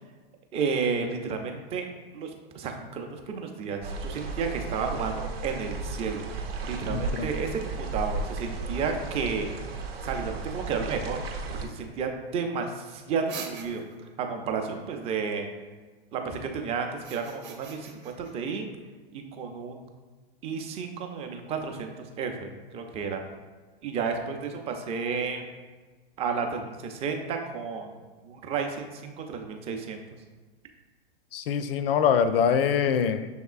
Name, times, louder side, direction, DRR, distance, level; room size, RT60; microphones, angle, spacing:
voice 1, 0.5-1.9 2.1-9.5 10.0-11.2 11.5-13.8 14.2-15.5 16.1-18.7 19.1-19.8 20.4-23.2 23.8-25.5 26.2-27.9 28.2-30.0, right 5 dB, 20° right, 4 dB, 0.4 m, -32 dB
sound 1, 3.8-11.7, right 4 dB, 75° right, 0.7 m, -34 dB
voice 2, 6.9-7.3 31.3-33.3, left 7 dB, 65° left, 11 dB, 0.4 m, -24 dB
sound 2, 13.3-14.1 16.9-18.3, right 6 dB, 40° right, 0.8 m, -42 dB
6.1 x 3.5 x 2.4 m, 1.4 s
hypercardioid pair, 115°, 31 cm